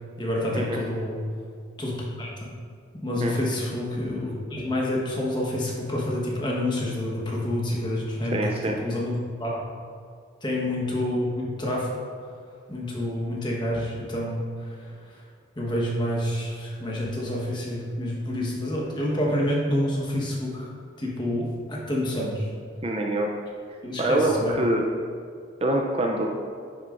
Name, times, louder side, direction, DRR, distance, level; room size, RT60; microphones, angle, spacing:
voice 1, 0.2-1.2 1.8-2.3 3.0-8.4 8.7-9.6 10.4-11.9 12.7-15.2 15.6-20.7 21.0-22.5 23.8-24.5, left 1 dB, 25° left, -3 dB, 1.2 m, -28 dB
voice 2, 8.3-8.8 22.8-23.3 24.0-24.8 25.6-26.3, right 1 dB, 30° right, 1 dB, 0.5 m, -25 dB
10.5 x 6.4 x 2.5 m, 2.2 s
head